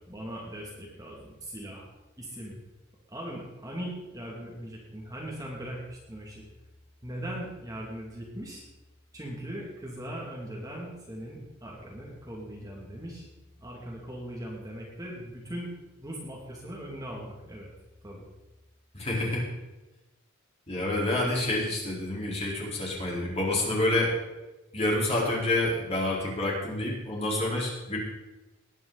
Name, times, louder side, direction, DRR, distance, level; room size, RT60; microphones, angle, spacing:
voice 1, 0.0-1.9 2.2-2.5 3.1-6.4 7.0-8.6 9.1-13.3 13.6-15.7 16.0-17.7 18.0-18.2 21.1-21.2, right 1 dB, 15° right, -3 dB, 2.7 m, -39 dB
voice 2, 18.9-19.5 20.7-24.1 24.7-28.0, left 1 dB, 30° left, -4 dB, 4.4 m, -28 dB
20.0 x 10.0 x 4.2 m, 1.0 s
head